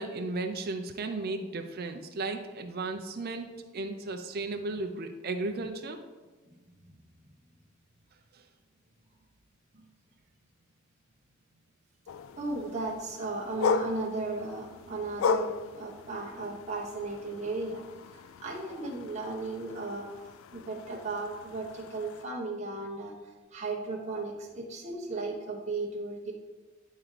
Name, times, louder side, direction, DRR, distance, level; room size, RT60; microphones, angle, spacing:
voice 1, 0.0-3.5 3.7-6.0, right 3 dB, 50° right, 5 dB, 0.5 m, -35 dB
sound 1, 12.1-22.3, left 5 dB, 75° left, 0.3 m, -36 dB
voice 2, 12.4-17.9 18.1-20.1 20.5-23.1 23.5-26.3, right 3 dB, 35° right, -3 dB, 1.1 m, -35 dB
10.5 x 3.6 x 3.3 m, 1.2 s
head